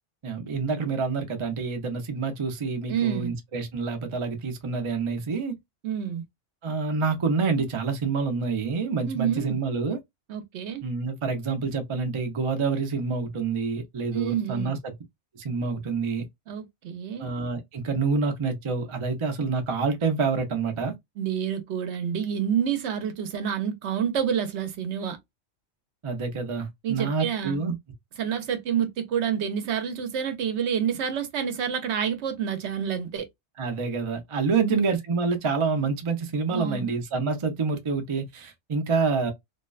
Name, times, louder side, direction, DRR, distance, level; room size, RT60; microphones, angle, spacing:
voice 1, 0.2-5.5 6.6-10.0 10.8-14.9 15.4-16.2 17.2-21.0 26.0-27.7 33.6-39.3, right 4 dB, 45° right, 0.4 m, -27 dB
voice 2, 2.9-3.3 5.8-6.2 9.0-9.6 10.3-10.8 14.1-14.8 16.5-17.3 21.2-25.2 26.8-27.6 28.2-33.3 34.5-34.8 36.5-36.9, right 8 dB, 70° right, 0.9 m, -28 dB
2.6 x 2.1 x 2.3 m
omnidirectional pair, 1.3 m